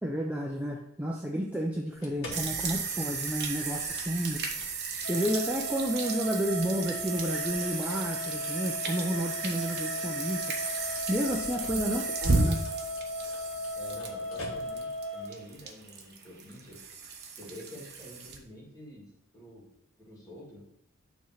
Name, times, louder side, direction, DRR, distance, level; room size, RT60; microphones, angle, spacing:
voice 1, 0.0-4.4 5.1-10.6 11.1-12.6, equal, 5° right, 0 dB, 0.4 m, -31 dB
sound 1, 1.8-15.0, left 1 dB, 65° left, 1.5 m, -50 dB
sound 2, 2.3-18.4, right 4 dB, 45° right, 0.9 m, -34 dB
sound 3, 5.0-15.3, left 1 dB, 90° left, 1.1 m, -37 dB
voice 2, 11.6-12.1 13.7-16.8 17.4-19.6 20.0-20.6, equal, 15° left, -5 dB, 1.9 m, -48 dB
6.9 x 3.1 x 5.7 m, 0.83 s
head